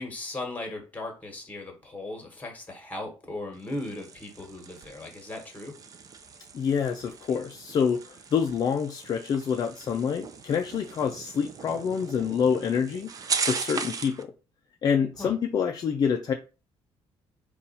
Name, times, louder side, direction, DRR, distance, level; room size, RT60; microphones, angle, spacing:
voice 1, 0.0-5.7 15.2-15.3, left 2 dB, 15° left, 1.3 m, -37 dB
sound 1, 3.5-14.2, right 5 dB, 35° right, 0.4 m, -38 dB
voice 2, 6.5-14.3 14.8-16.3, left 7 dB, 40° left, 0.4 m, -27 dB
4.0 x 2.3 x 4.1 m
cardioid pair, 145°, 11 cm